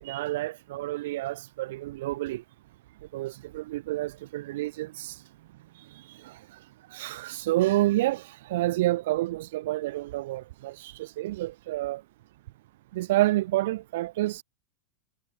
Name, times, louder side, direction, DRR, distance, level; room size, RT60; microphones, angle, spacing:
voice 1, 0.0-2.4 3.1-5.2 5.8-6.6 6.9-12.0 12.9-14.4, right 17 dB, 55° right, 3.1 m, -29 dB
figure-of-eight pair, 90°, 0 cm